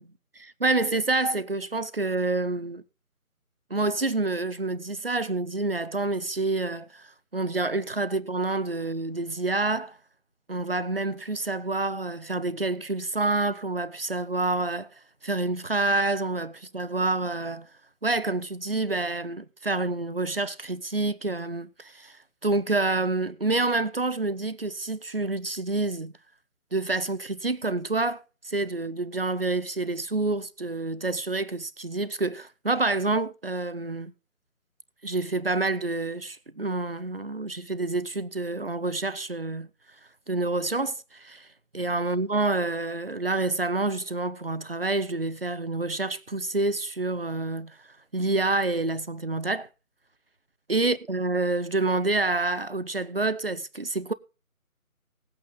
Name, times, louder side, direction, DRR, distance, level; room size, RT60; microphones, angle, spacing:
voice 1, 0.4-2.8 3.7-7.1 7.3-10.0 10.5-14.9 15.2-17.7 18.0-22.2 22.4-26.1 26.7-34.1 35.0-39.7 40.3-41.5 41.7-47.8 48.1-49.7 50.7-54.1, right 2 dB, 40° right, 0.7 m, -28 dB
18.0 x 8.6 x 3.8 m
figure-of-eight pair, 160°, 44 cm